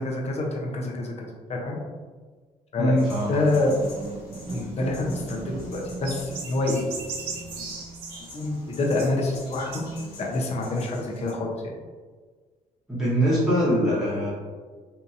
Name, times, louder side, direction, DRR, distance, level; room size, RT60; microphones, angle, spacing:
voice 1, 0.0-1.8 2.7-2.9 3.3-3.7 4.5-6.8 7.2-7.7 8.3-9.9 10.2-11.5, left 2 dB, 45° left, -1 dB, 0.6 m, -27 dB
voice 2, 2.8-3.3 12.9-14.3, equal, ahead, -10 dB, 1.0 m, -22 dB
sound 1, 3.0-11.3, left 2 dB, 85° left, 1.0 m, -48 dB
sound 2, 3.1-10.6 11.1-11.2, right 2 dB, 40° right, 0.5 m, -40 dB
sound 3, 4.4-4.7 5.3-5.4 5.6-5.7 6.0-8.4 9.0-9.4 9.7-9.9, right 5 dB, 85° right, 0.5 m, -37 dB
2.8 x 2.6 x 2.5 m, 1.5 s
cardioid pair, 80°, 16 cm